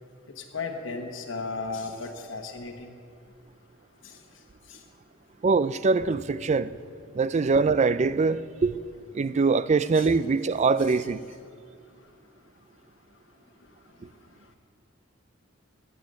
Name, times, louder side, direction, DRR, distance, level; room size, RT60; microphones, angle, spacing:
voice 1, 0.4-2.9 4.0-4.2 4.7-4.8 9.9-10.1, left 4 dB, 70° left, 1.2 m, -35 dB
voice 2, 5.4-6.7 7.1-8.8 9.1-11.2, right 4 dB, 35° right, 0.4 m, -23 dB
14.0 x 6.9 x 9.4 m
head